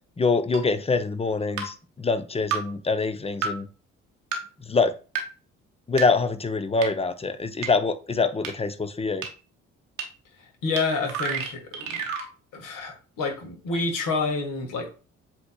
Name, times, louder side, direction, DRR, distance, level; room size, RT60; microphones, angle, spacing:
voice 1, 0.2-3.7 4.7-4.9 5.9-9.2, left 4 dB, 15° left, 11 dB, 0.6 m, -25 dB
sound 1, 0.5-0.6 1.6-1.7 2.5-2.6 3.4-3.5 4.3-4.4 5.1-5.2 6.0-6.1 6.8-6.9 7.6-7.7 8.4-8.5 9.2-9.3 10.0-10.1 10.8-10.9 11.1-12.3, right 6 dB, 85° right, 1.0 m, -29 dB
voice 2, 10.4-12.1 12.5-14.9, left 3 dB, 55° left, 2 dB, 1.7 m, -29 dB
7.7 x 3.0 x 2.2 m, 0.35 s
hypercardioid pair, 50°, 38 cm